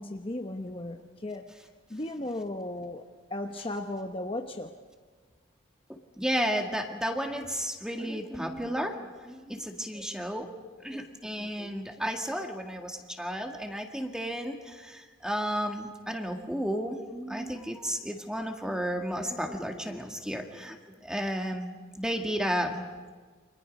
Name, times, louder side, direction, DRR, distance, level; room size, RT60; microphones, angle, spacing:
voice 1, 0.0-1.5 1.9-4.8, left 1 dB, 25° left, 4 dB, 0.9 m, -36 dB
voice 2, 5.9-10.5 10.8-22.8, equal, 5° right, 3 dB, 1.9 m, -33 dB
29.5 x 26.0 x 5.3 m, 1.5 s
head